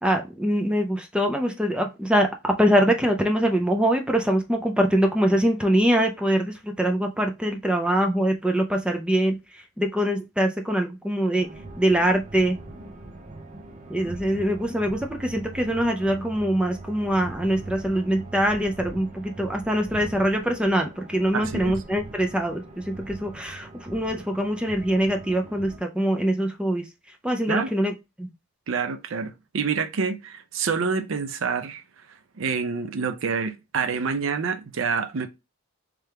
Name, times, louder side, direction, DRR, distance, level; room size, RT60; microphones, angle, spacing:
voice 1, 0.0-9.4 9.8-11.5 11.8-12.6 13.9-26.8 27.2-27.9 28.2-28.3, equal, 5° right, 0.4 m, -23 dB
sound 1, 11.4-25.8, right 2 dB, 35° right, 0.7 m, -41 dB
voice 2, 21.3-21.8 27.5-27.7 28.7-31.8 32.4-35.3, right 5 dB, 65° right, 0.5 m, -27 dB
3.4 x 3.4 x 3.3 m
head